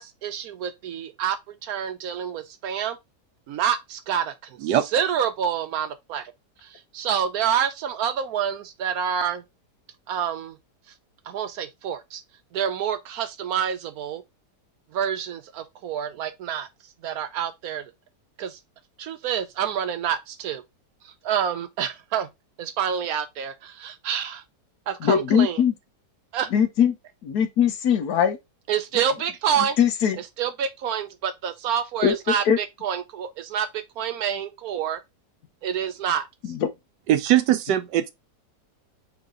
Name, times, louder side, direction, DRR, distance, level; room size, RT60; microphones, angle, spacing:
voice 1, 0.0-3.0 3.5-4.3 4.6-6.2 6.6-9.4 10.1-10.6 11.3-12.2 12.5-14.2 14.9-16.7 17.0-17.8 18.4-18.6 19.0-20.6 21.2-22.3 22.6-24.4 24.9-25.6 26.3-26.5 28.7-29.8 30.4-35.0 35.6-36.3, right 8 dB, 70° right, 1.0 m, -27 dB
voice 2, 25.0-25.7 26.5-26.9 27.2-28.4 29.8-30.2 32.0-32.6 36.5-36.7, left 8 dB, 70° left, 1.3 m, -21 dB
voice 3, 37.1-38.1, right 12 dB, 85° right, 1.2 m, -20 dB
4.0 x 3.3 x 3.6 m
omnidirectional pair, 1.8 m